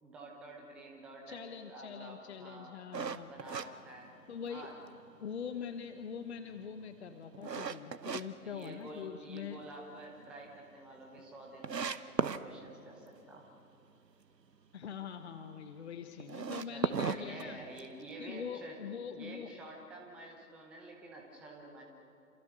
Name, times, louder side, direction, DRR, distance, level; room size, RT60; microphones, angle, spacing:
voice 1, 0.0-2.7 3.2-4.1 4.5-4.8 8.4-13.5 16.7-18.8 19.1-21.8, right 2 dB, ahead, 0 dB, 0.8 m, -49 dB
voice 2, 1.3-3.3 4.3-4.7 5.2-9.6 14.7-17.6 18.2-19.5, left 7 dB, 40° left, 8 dB, 1.2 m, -43 dB
sound 1, 2.9-4.6 5.1-5.2 5.7-8.2 8.6-9.4 9.7-9.8 10.2-10.3 10.5-10.6 11.2-11.3 11.6-12.4 16.2-18.0, right 6 dB, 80° right, 1.2 m, -36 dB
27.5 x 27.0 x 6.7 m, 2.7 s
figure-of-eight pair, 140°, 49 cm